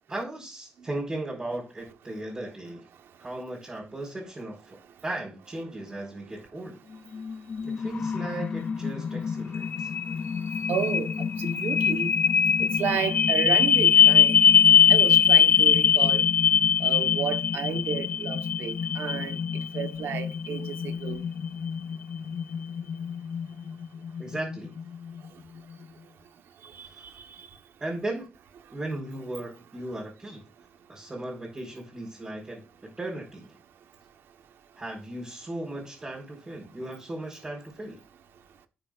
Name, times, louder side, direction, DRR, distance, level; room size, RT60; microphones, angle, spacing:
voice 1, 0.1-2.8 3.2-4.8 5.0-6.8 7.6-9.9 24.2-24.7 26.9-27.0 27.8-28.3 28.7-30.4 30.9-32.6 33.0-33.6 34.8-38.0, right 1 dB, 20° right, 4.0 m, -36 dB
sound 1, 7.1-25.2, left 7 dB, 40° left, 0.3 m, -23 dB
voice 2, 10.7-11.1 11.4-12.1 12.6-14.4 14.9-16.2 16.8-19.3 19.7-21.2 26.8-26.9, right 8 dB, 75° right, 1.1 m, -32 dB
11.0 x 9.0 x 2.4 m
cardioid pair, 125°, 4 cm